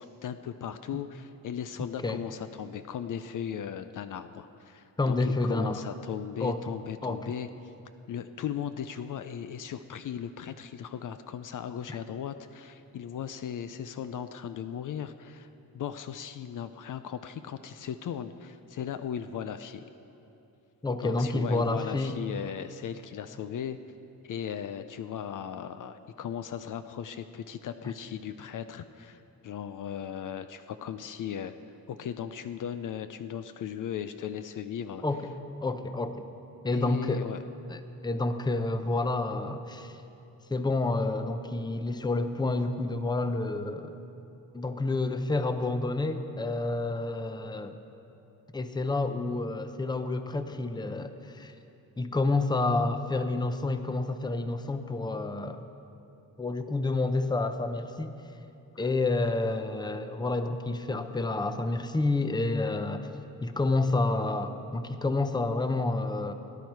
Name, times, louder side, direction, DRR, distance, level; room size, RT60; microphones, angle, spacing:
voice 1, 0.0-7.5 8.1-15.5 15.7-19.8 21.0-23.8 24.2-31.5 31.9-35.0 36.7-37.4 58.7-58.9, left 9 dB, 60° left, 11 dB, 0.5 m, -37 dB
voice 2, 5.0-5.8 6.4-6.6 7.0-7.3 11.9-12.0 20.8-22.2 27.8-27.9 35.0-35.2 35.6-36.3 36.6-37.3 37.7-40.0 40.5-44.0 44.5-47.8 48.5-51.5 52.0-55.6 56.4-58.1 58.8-63.1 63.4-66.3, left 2 dB, 10° left, 9 dB, 0.6 m, -29 dB
18.0 x 10.5 x 4.6 m, 2.9 s
cardioid pair, 100°, 36 cm